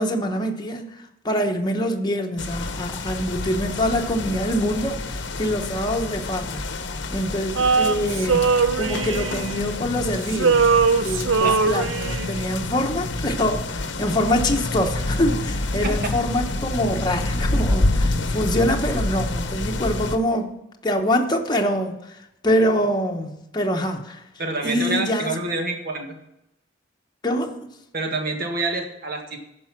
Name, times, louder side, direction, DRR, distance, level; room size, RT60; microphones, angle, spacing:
voice 1, 0.0-6.8 7.1-10.7 11.0-20.5 20.8-24.2 24.6-25.3 27.2-27.6, equal, 20° left, 1.1 m, -25 dB
sound 1, 2.4-20.2, left 2 dB, 65° left, 0.9 m, -28 dB
Male singing, 7.6-10.0 10.3-12.4, right 5 dB, 80° right, 0.6 m, -21 dB
voice 2, 24.4-26.2 27.9-29.4, right 2 dB, 55° right, 1.8 m, -27 dB
14.5 x 5.4 x 6.0 m
head